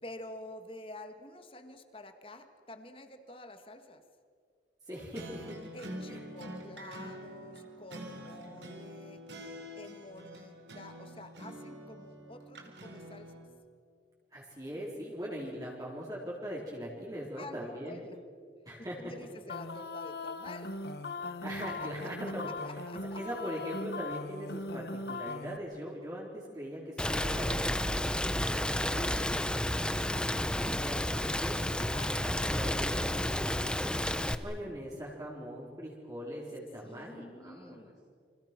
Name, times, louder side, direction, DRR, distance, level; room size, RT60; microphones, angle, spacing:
voice 1, 0.0-4.0 5.7-9.2 9.8-13.4 17.3-18.2 18.8-20.7 21.8-22.1 22.5-23.2 31.8-32.2 36.8-38.0, left 1 dB, 30° left, 8 dB, 1.9 m, -48 dB
voice 2, 4.9-5.6 6.1-6.2 14.3-18.0 18.6-19.0 21.4-22.5 23.2-27.8 28.2-31.6 31.9-34.1 34.4-37.8, equal, 20° right, -4 dB, 4.1 m, -41 dB
sound 1, 4.9-13.5, equal, 85° right, 4.0 m, -46 dB
sound 2, 19.5-25.6, left 3 dB, 65° left, 1.4 m, -39 dB
Rain, 27.0-34.4, left 1 dB, 5° left, 0.9 m, -31 dB
29.5 x 26.5 x 6.1 m, 2.2 s
head